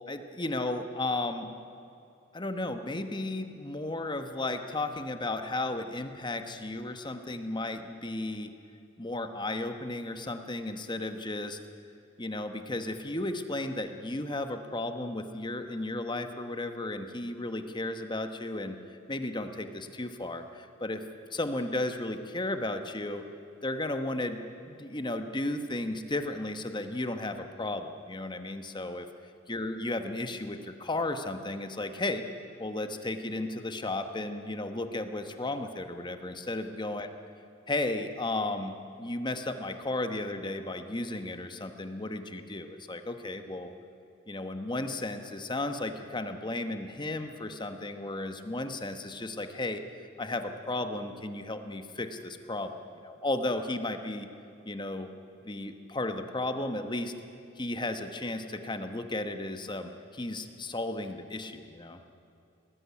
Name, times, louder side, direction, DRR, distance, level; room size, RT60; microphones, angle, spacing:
voice 1, 0.1-1.5 2.3-8.5 9.0-11.6 12.2-21.0 21.3-23.3 23.6-24.4 24.7-29.1 29.5-32.2 32.6-37.1 37.7-43.7 44.3-49.8 50.2-54.3 54.6-55.1 55.4-57.1 57.6-62.0, left 2 dB, 25° left, 8 dB, 1.1 m, -34 dB
19.5 x 14.0 x 9.8 m, 2.5 s
head